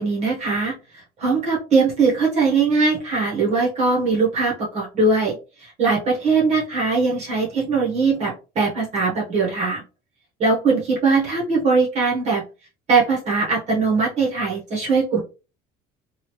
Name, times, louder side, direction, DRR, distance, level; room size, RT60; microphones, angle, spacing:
voice 1, 0.0-9.8 10.4-12.4 12.9-15.2, right 4 dB, 40° right, -5 dB, 1.1 m, -21 dB
3.0 x 2.4 x 3.0 m, 0.32 s
cardioid pair, 140°, 17 cm